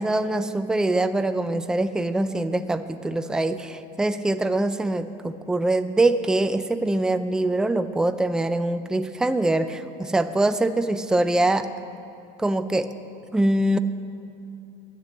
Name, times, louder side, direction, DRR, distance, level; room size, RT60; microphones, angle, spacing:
voice 1, 0.0-11.7 12.4-12.9 13.3-13.8, right 2 dB, 5° right, 10 dB, 0.4 m, -23 dB
10.0 x 9.8 x 7.6 m, 2.7 s
supercardioid pair, 115°, 20 cm